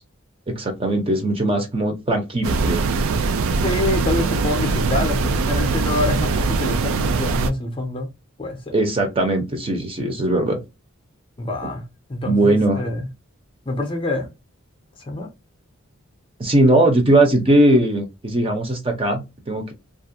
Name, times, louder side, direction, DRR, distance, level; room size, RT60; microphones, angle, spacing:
voice 1, 0.5-2.9 8.7-10.6 12.3-12.8 16.4-19.7, right 1 dB, 25° right, 0.6 m, -19 dB
sound 1, 2.4-7.5, right 4 dB, 75° right, 0.3 m, -21 dB
voice 2, 3.5-8.1 8.4-8.7 11.4-11.8 12.1-13.1 13.7-14.3 15.1-15.3, left 2 dB, 25° left, 0.5 m, -26 dB
2.4 x 2.1 x 2.6 m
head